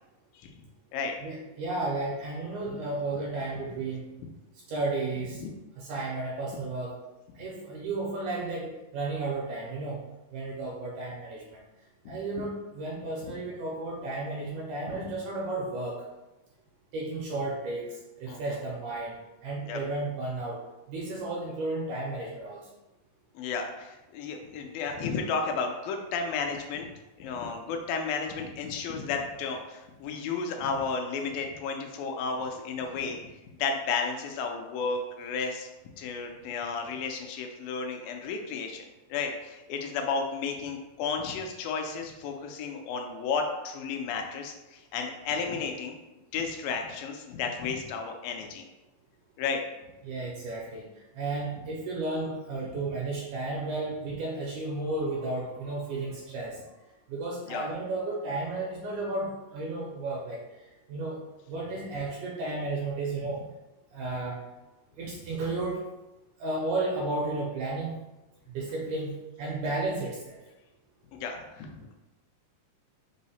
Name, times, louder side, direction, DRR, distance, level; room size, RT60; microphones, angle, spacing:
voice 1, 1.2-4.1 4.7-5.4 5.8-7.0 7.4-10.0 10.3-11.6 12.1-16.0 16.9-17.9 18.2-19.1 19.4-20.6 20.9-22.6 50.0-50.8 51.2-56.6 57.1-60.4 60.9-61.2 61.5-63.4 63.9-64.4 65.0-65.8 66.4-68.0 68.6-69.1 69.4-70.4, right 2 dB, 80° right, -3 dB, 1.8 m, -33 dB
voice 2, 12.1-12.4 14.9-15.0 18.3-18.6 19.6-19.8 23.4-26.9 27.2-33.2 33.6-35.7 36.0-38.8 39.1-46.0 46.3-48.7 49.4-49.6 52.6-52.8 57.5-57.7 71.1-71.9, left 5 dB, 85° left, 3 dB, 2.3 m, -33 dB
5.4 x 2.0 x 4.1 m, 1.0 s
omnidirectional pair, 4.1 m